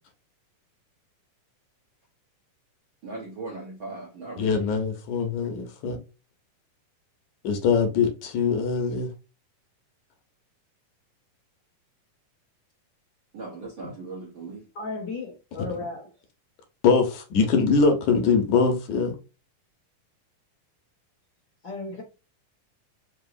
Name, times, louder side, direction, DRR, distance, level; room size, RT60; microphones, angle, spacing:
voice 1, 3.0-4.6 13.3-14.6, right 3 dB, 65° right, 1.2 m, -38 dB
voice 2, 4.4-6.0 7.4-9.1 16.8-19.1, left 5 dB, 75° left, 2.1 m, -22 dB
voice 3, 14.7-16.1 21.6-22.0, left 3 dB, 90° left, 0.9 m, -34 dB
5.4 x 2.9 x 2.5 m
omnidirectional pair, 3.8 m